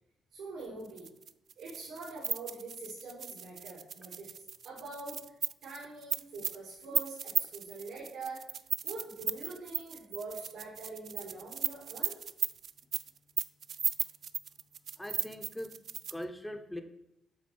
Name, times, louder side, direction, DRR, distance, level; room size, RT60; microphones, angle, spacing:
voice 1, 0.3-1.1 1.6-5.2 5.6-8.4 8.8-12.1, right 3 dB, 85° right, -5 dB, 2.5 m, -44 dB
sound 1, 0.9-16.2, right 7 dB, 55° right, 0.3 m, -36 dB
voice 2, 15.0-15.7 16.1-16.8, left 1 dB, 10° left, 7 dB, 0.8 m, -41 dB
7.4 x 3.8 x 6.2 m, 0.85 s
cardioid pair, 90°, 0 cm